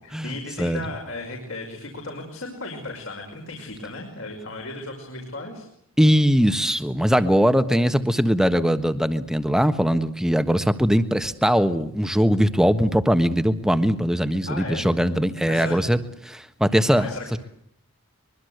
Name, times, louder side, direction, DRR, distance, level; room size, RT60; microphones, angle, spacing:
voice 1, 0.0-5.7 14.5-14.9 15.5-15.8 16.9-17.4, left 2 dB, 60° left, 2 dB, 5.6 m, -35 dB
voice 2, 6.0-17.4, equal, 5° right, 10 dB, 1.4 m, -21 dB
24.0 x 23.0 x 8.0 m, 0.71 s
head